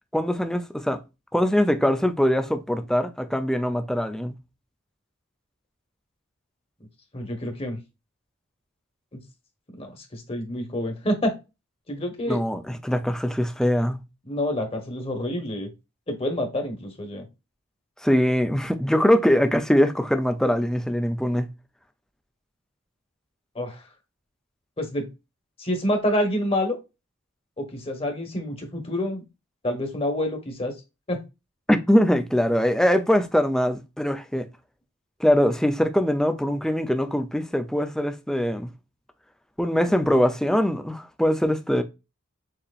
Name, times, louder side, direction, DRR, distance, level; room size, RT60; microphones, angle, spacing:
voice 1, 0.1-1.0 1.3-4.3 12.3-14.0 18.0-21.5 31.7-34.5 35.2-38.7 39.6-41.8, equal, ahead, 0.5 m, -22 dB
voice 2, 7.1-7.8 9.1-9.2 9.8-11.3 11.9-12.4 14.3-15.7 16.1-17.2 23.5-23.8 24.8-25.1 25.6-26.8 27.6-29.2 29.6-30.7 31.1-31.2, left 1 dB, 25° left, 1.3 m, -27 dB
6.7 x 2.9 x 2.5 m
head